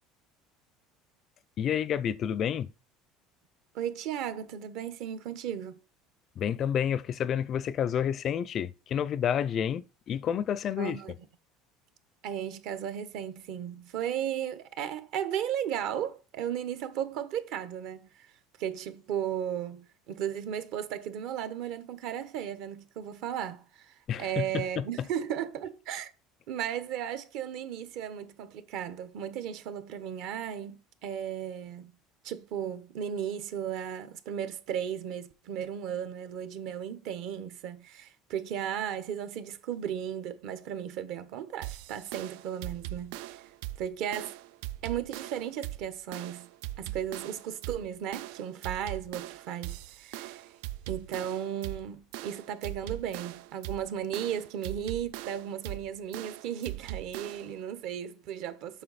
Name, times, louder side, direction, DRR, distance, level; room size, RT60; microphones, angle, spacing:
voice 1, 1.6-2.7 6.4-11.0 24.1-24.8, left 9 dB, 35° left, 0.4 m, -29 dB
voice 2, 3.7-5.8 10.8-11.1 12.2-18.3 18.6-26.1 26.5-31.9 32.2-43.2 43.8-44.3 44.8-46.5 46.8-50.5 50.9-58.8, right 9 dB, 60° right, 1.1 m, -35 dB
sound 1, 41.6-57.6, right 15 dB, 80° right, 0.3 m, -41 dB
7.7 x 6.2 x 4.1 m
cardioid pair, 155°, 0 cm